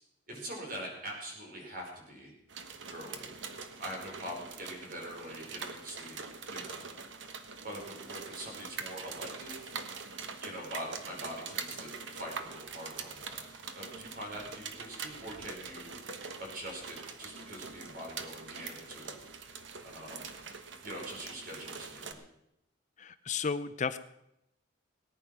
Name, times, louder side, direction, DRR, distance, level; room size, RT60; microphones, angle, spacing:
voice 1, 0.3-2.3 2.9-3.3 3.8-6.2 6.5-6.9 7.6-9.8 10.4-13.4 13.7-16.0 16.4-19.1 19.8-20.3 20.8-22.2, equal, 45° right, -1 dB, 5.1 m, -43 dB
sound 1, 2.5-22.1, right 5 dB, 60° right, 1.3 m, -44 dB
voice 2, 23.0-24.0, left 5 dB, 35° left, 13 dB, 0.5 m, -33 dB
18.5 x 9.8 x 6.2 m, 0.82 s
head